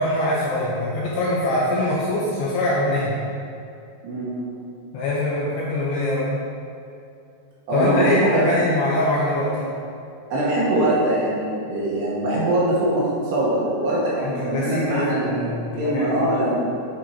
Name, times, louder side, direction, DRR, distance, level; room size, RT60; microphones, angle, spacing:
voice 1, 0.0-3.1 4.9-6.3 7.7-9.7 14.2-16.2, left 1 dB, 75° left, -7 dB, 2.6 m, -23 dB
voice 2, 4.0-4.4 7.7-8.5 10.3-15.5 15.8-16.6, right 1 dB, 70° right, -7 dB, 3.1 m, -22 dB
10.5 x 4.4 x 4.7 m, 2.6 s
omnidirectional pair, 5.8 m